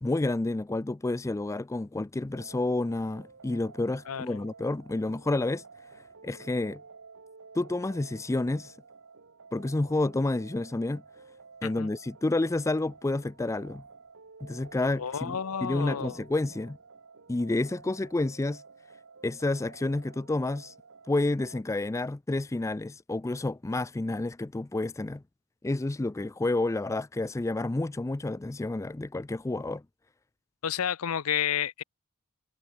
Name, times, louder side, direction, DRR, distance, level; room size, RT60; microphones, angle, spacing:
voice 1, 0.0-5.6 6.2-6.8 7.6-8.7 9.5-11.0 11.6-13.8 14.4-16.8 17.3-18.6 19.2-20.7 21.1-25.2 25.6-29.8, left 2 dB, 15° left, 0.4 m, -29 dB
sound 1, 2.3-21.6, right 4 dB, 60° right, 1.2 m, -52 dB
voice 2, 4.1-4.4 11.6-11.9 15.0-16.3 30.6-31.8, left 8 dB, 70° left, 0.6 m, -31 dB
head